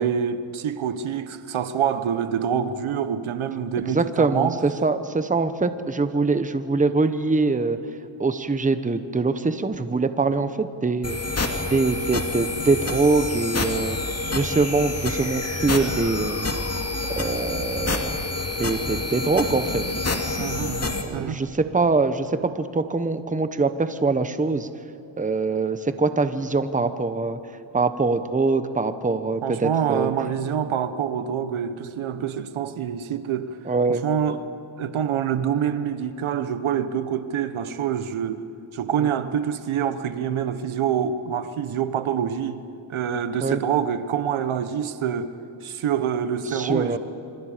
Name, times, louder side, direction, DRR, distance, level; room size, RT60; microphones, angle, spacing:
voice 1, 0.0-4.6 20.4-21.4 29.4-33.6 33.9-34.4 34.8-38.4 38.7-42.6 42.9-45.3 45.6-47.0, right 8 dB, 70° right, 1.3 m, -26 dB
voice 2, 3.8-7.8 8.2-11.4 11.7-14.0 14.3-16.5 17.2-18.1 18.6-19.8 21.0-24.7 25.2-27.4 27.7-30.1 33.7-34.0 39.0-39.2 43.4-43.6 46.5-47.0, right 3 dB, 15° right, 1.1 m, -23 dB
sound 1, 11.0-21.0, left 2 dB, 30° left, 2.6 m, -28 dB
26.5 x 26.0 x 5.1 m
cardioid pair, 95°, 50 cm